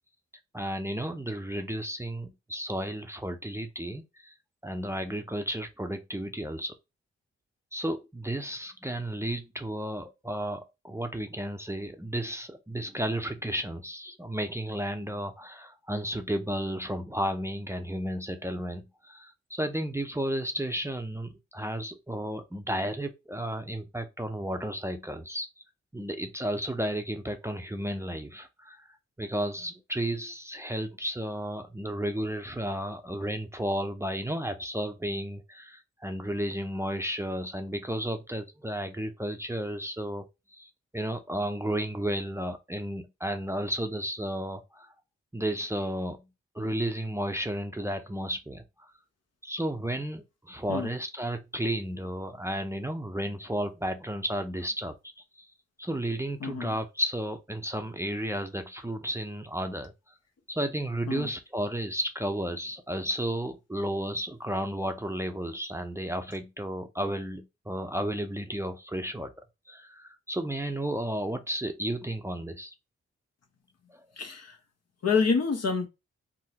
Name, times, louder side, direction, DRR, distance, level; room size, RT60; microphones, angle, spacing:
voice 1, 0.5-4.3 4.6-6.7 7.7-25.6 25.9-45.0 45.3-46.2 46.5-48.9 49.4-54.9 55.3-55.5 55.8-59.9 60.5-69.3 69.7-72.7 73.9-74.0, right 1 dB, 10° right, 0.6 m, -33 dB
voice 2, 56.4-56.7 61.1-61.3 74.2-74.6 75.0-75.9, left 5 dB, 55° left, 0.9 m, -27 dB
3.5 x 2.0 x 2.9 m
supercardioid pair, 45°, 30 cm